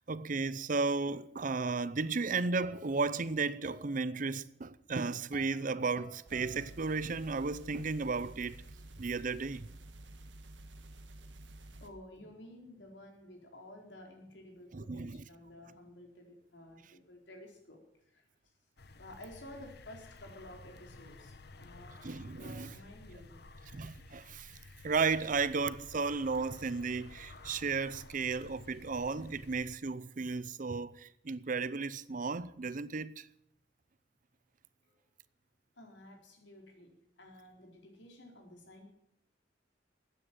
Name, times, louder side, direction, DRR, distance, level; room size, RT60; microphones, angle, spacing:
voice 1, 0.0-8.6 9.0-9.7 14.7-15.3 22.0-22.7 23.7-24.5 24.8-33.3, right 4 dB, 45° right, 0.6 m, -34 dB
sound 1, 2.6-7.5, right 1 dB, 5° right, 1.5 m, -57 dB
sound 2, 6.3-11.9, right 1 dB, 90° right, 1.8 m, -51 dB
voice 2, 11.8-17.8 18.1-18.2 18.9-22.0 22.3-23.4 35.8-36.9 37.2-38.9, left 1 dB, 80° left, 4.2 m, -52 dB
sound 3, 18.8-29.8, left 3 dB, 60° left, 1.1 m, -53 dB
13.5 x 9.6 x 9.0 m
head